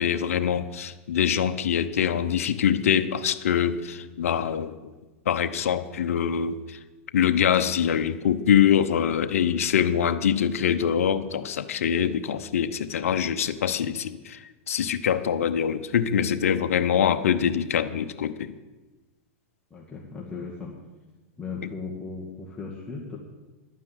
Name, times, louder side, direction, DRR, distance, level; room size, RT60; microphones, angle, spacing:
voice 1, 0.0-4.8 5.3-6.8 7.1-14.4 14.7-18.5, left 8 dB, 80° left, 10 dB, 0.8 m, -24 dB
voice 2, 19.7-20.8 21.4-23.2, left 4 dB, 15° left, -4 dB, 2.1 m, -37 dB
11.5 x 9.5 x 8.0 m, 1.2 s
hypercardioid pair, 120°, 8 cm